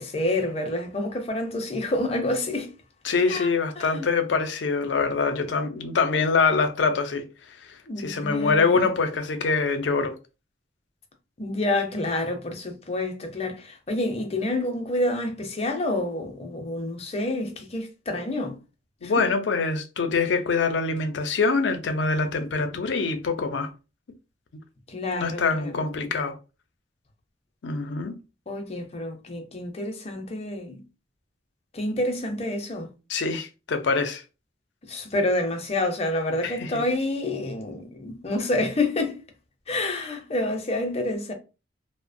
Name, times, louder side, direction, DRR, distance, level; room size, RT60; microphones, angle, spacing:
voice 1, 0.0-2.7 3.3-3.5 3.8-4.1 7.9-8.8 11.4-18.6 19.0-19.3 24.9-25.8 28.5-30.8 31.7-32.9 34.8-39.2 39.7-41.3, left 1 dB, 35° left, 0.5 m, -28 dB
voice 2, 3.0-10.2 19.0-23.7 25.1-26.4 27.6-28.2 33.1-34.2 36.4-36.8, left 4 dB, 85° left, 0.5 m, -25 dB
2.8 x 2.1 x 2.5 m
head